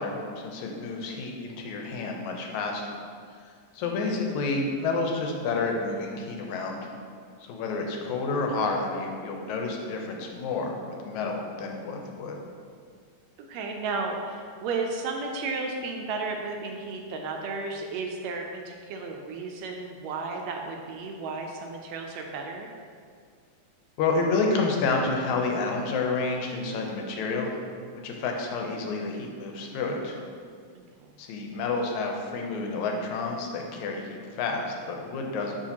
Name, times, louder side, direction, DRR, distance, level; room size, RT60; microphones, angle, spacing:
voice 1, 0.0-2.9 3.7-6.9 7.4-12.4 24.0-27.5 28.0-30.2 31.2-35.6, left 3 dB, 90° left, 1 dB, 2.0 m, -29 dB
voice 2, 13.5-22.7 30.7-31.1, right 3 dB, 80° right, 2 dB, 1.7 m, -33 dB
6.2 x 5.8 x 2.8 m, 2.1 s
omnidirectional pair, 3.3 m